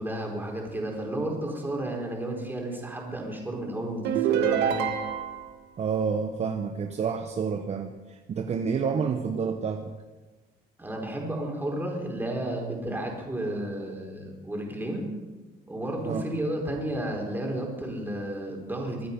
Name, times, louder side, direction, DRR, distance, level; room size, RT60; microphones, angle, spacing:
voice 1, 0.0-4.9 10.8-15.1 15.7-19.1, right 1 dB, 10° right, 0 dB, 4.1 m, -32 dB
sound 1, 4.0-5.5, right 9 dB, 80° right, 1.3 m, -26 dB
voice 2, 5.8-9.9 16.0-16.2, right 6 dB, 40° right, 6 dB, 1.0 m, -29 dB
23.5 x 9.4 x 5.3 m, 1.2 s
cardioid pair, 110°, 17 cm